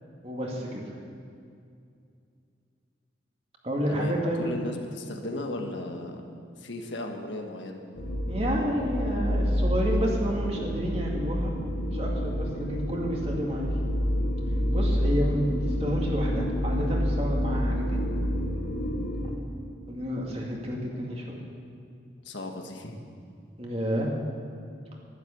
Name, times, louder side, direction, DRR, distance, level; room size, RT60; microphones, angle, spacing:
voice 1, 0.2-0.9 3.6-4.5 8.3-11.5 11.9-13.7 14.7-18.0 19.9-21.3 23.6-24.1, equal, 35° right, -1 dB, 2.2 m, -30 dB
voice 2, 3.9-6.3 6.6-7.8 22.2-23.0, left 1 dB, 85° left, 3 dB, 1.6 m, -36 dB
sound 1, 8.0-19.4, equal, 55° left, 1.5 m, -28 dB
11.5 x 11.0 x 8.7 m, 2.4 s
head